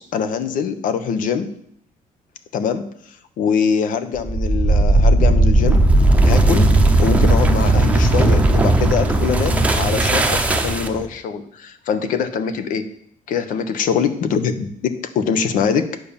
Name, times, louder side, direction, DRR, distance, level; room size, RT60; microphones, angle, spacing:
voice 1, 0.0-1.5 2.5-2.9 3.4-5.9 6.2-6.7 7.0-12.8 13.3-16.0, left 6 dB, 70° left, 11 dB, 1.0 m, -23 dB
sound 1, 4.2-11.1, right 2 dB, 10° right, 0.7 m, -16 dB
9.4 x 5.5 x 7.0 m, 0.68 s
cardioid pair, 170°, 14 cm